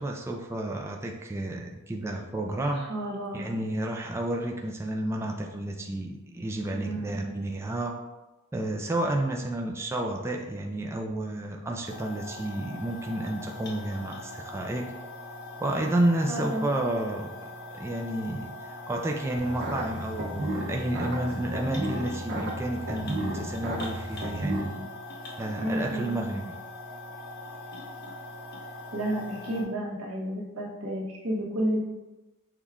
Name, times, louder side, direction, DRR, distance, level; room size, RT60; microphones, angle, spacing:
voice 1, 0.0-2.9 3.3-8.0 8.5-14.9 15.6-17.3 17.7-24.8 25.4-26.4, right 1 dB, 15° right, 0 dB, 0.3 m, -31 dB
voice 2, 2.7-3.5 6.7-7.5 16.3-16.6 25.6-26.2 28.9-31.8, right 1 dB, 85° right, -3 dB, 1.1 m, -31 dB
sound 1, 11.9-29.6, left 2 dB, 50° left, 1.1 m, -42 dB
sound 2, 19.4-24.6, right 1 dB, 55° right, 0.7 m, -33 dB
6.2 x 2.3 x 3.5 m, 1.1 s
head